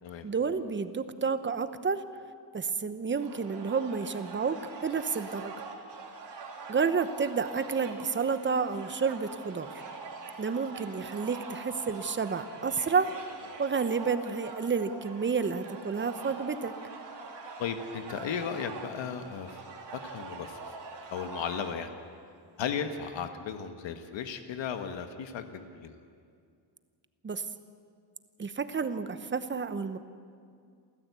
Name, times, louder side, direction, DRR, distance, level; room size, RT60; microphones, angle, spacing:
voice 1, 0.2-2.0 2.5-5.5 6.7-9.7 10.4-13.1 13.6-16.7 27.2-27.4 28.4-30.0, right 5 dB, 25° right, 11 dB, 1.0 m, -30 dB
sound 1, 3.2-21.7, right 4 dB, 65° right, 3.4 m, -44 dB
voice 2, 17.6-19.6 19.9-20.7 21.1-21.9 22.6-25.9, left 7 dB, 75° left, 7 dB, 1.4 m, -35 dB
28.0 x 14.0 x 8.3 m, 2.2 s
cardioid pair, 145°, 45 cm